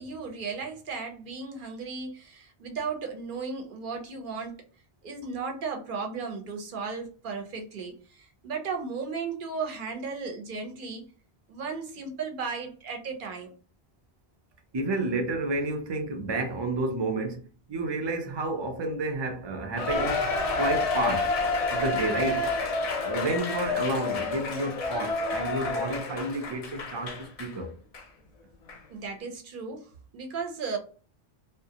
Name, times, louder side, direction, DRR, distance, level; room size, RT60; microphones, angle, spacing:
voice 1, 0.0-4.6 5.0-11.1 11.5-13.5 28.9-29.9 30.1-30.8, right 5 dB, 60° right, 0.8 m, -35 dB
voice 2, 14.7-17.4 17.7-20.3 20.6-21.4 21.7-22.5 23.0-27.7, right 2 dB, 40° right, 0.4 m, -30 dB
Cheering, 19.8-27.5 27.9-28.0 28.7-28.8, left 3 dB, 50° left, 0.5 m, -29 dB
2.3 x 2.0 x 2.7 m
omnidirectional pair, 1.0 m